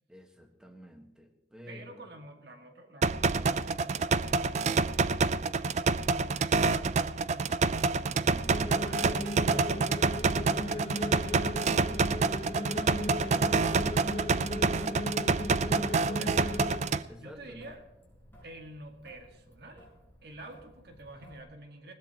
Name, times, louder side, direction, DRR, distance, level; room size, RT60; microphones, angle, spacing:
voice 1, 0.1-2.1 8.1-8.7 15.6-16.3 17.1-17.7, equal, 5° right, 5 dB, 1.3 m, -49 dB
voice 2, 1.7-7.5 8.3-15.0 15.8-16.6 17.2-17.8 18.4-19.9 20.2-21.9, right 1 dB, 60° right, 3 dB, 1.9 m, -49 dB
sound 1, 3.0-17.0, right 4 dB, 40° right, 0.4 m, -27 dB
Traffic noise roadway noise / Drip / Trickle dribble, 7.4-21.4, equal, 15° left, 5.2 m, -58 dB
sound 2, 8.5-16.8, left 1 dB, 35° left, 1.3 m, -37 dB
20.0 x 17.0 x 2.9 m, 1.0 s
head